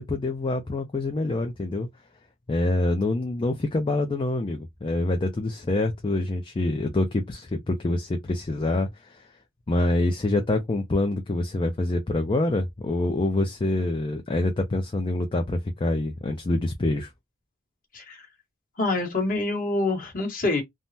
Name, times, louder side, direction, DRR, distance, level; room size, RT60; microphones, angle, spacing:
voice 1, 0.0-1.9 2.5-9.3 9.7-17.1, left 2 dB, 25° left, 0.4 m, -26 dB
voice 2, 17.9-18.3 18.8-20.6, left 2 dB, 40° left, 1.2 m, -26 dB
3.4 x 2.0 x 2.6 m
head